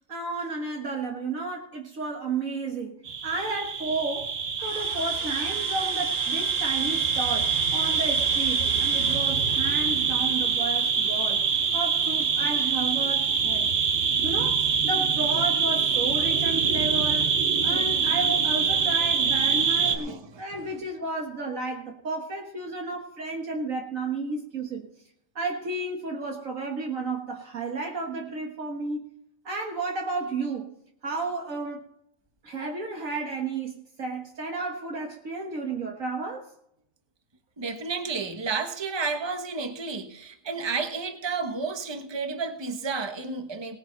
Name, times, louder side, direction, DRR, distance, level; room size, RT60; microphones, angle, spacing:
voice 1, 0.1-4.3 4.6-11.4 11.7-13.7 14.2-17.3 17.6-24.9 25.4-29.1 29.4-30.7 31.0-31.8 32.4-36.5, right 3 dB, 70° right, 2.0 m, -32 dB
sound 1, 3.0-20.0, right 6 dB, 55° right, 1.3 m, -25 dB
sound 2, 4.6-12.7, right 1 dB, 85° right, 4.4 m, -44 dB
voice 2, 19.5-20.7 37.6-43.8, right 4 dB, 20° right, 1.2 m, -32 dB
19.0 x 9.5 x 4.0 m
omnidirectional pair, 1.5 m